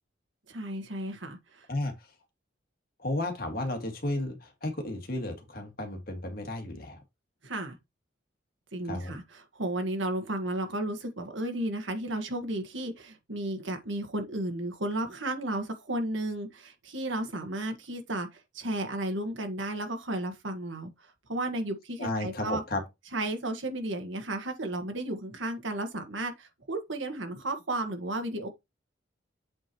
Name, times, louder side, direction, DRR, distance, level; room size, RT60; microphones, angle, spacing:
voice 1, 0.5-1.7 7.4-7.8 8.7-22.6 23.1-28.5, right 1 dB, 75° right, 1.6 m, -33 dB
voice 2, 3.0-7.0 8.9-9.2 22.0-22.8, left 1 dB, 50° left, 1.9 m, -33 dB
8.0 x 5.2 x 3.0 m
head